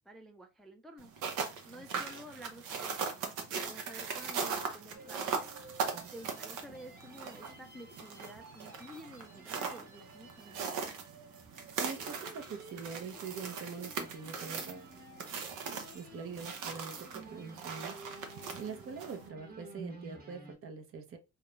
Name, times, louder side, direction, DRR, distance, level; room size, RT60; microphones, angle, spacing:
voice 1, 0.1-1.1 1.6-3.0 3.5-5.5 6.1-10.8, equal, ahead, 0.3 m, -51 dB
sound 1, 1.0-19.3, right 5 dB, 85° right, 0.7 m, -40 dB
sound 2, 4.9-20.6, right 2 dB, 30° right, 1.0 m, -53 dB
voice 2, 11.8-14.9 15.6-18.0 18.6-21.2, right 5 dB, 45° right, 0.6 m, -44 dB
2.3 x 2.1 x 2.9 m
cardioid pair, 90°, 30 cm